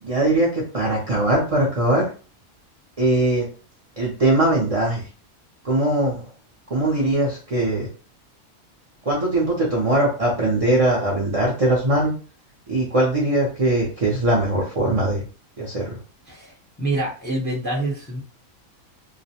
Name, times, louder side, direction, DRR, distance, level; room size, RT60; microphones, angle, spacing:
voice 1, 0.0-2.1 3.0-3.5 4.0-5.1 5.6-6.3 6.7-7.9 9.0-12.1 12.7-15.2 15.6-16.0, right 1 dB, 50° right, -4 dB, 0.4 m, -21 dB
voice 2, 16.8-18.2, right 2 dB, 10° left, -6 dB, 0.6 m, -26 dB
2.3 x 2.0 x 2.7 m, 0.37 s
omnidirectional pair, 1.4 m